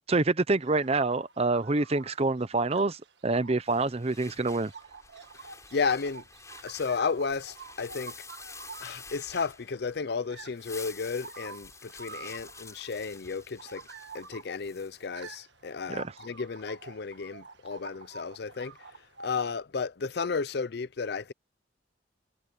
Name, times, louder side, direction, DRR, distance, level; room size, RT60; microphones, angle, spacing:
voice 1, 0.1-4.7 15.9-16.1, right 3 dB, 35° right, 0.7 m, -27 dB
sound 1, 0.6-19.3, right 4 dB, 75° right, 1.6 m, -49 dB
sound 2, 3.6-10.0 10.4-15.1, left 4 dB, 15° left, 6.2 m, -49 dB
voice 2, 5.7-6.2 6.6-8.1 8.8-13.9 14.1-18.8 19.2-21.3, left 5 dB, 60° left, 0.6 m, -33 dB
head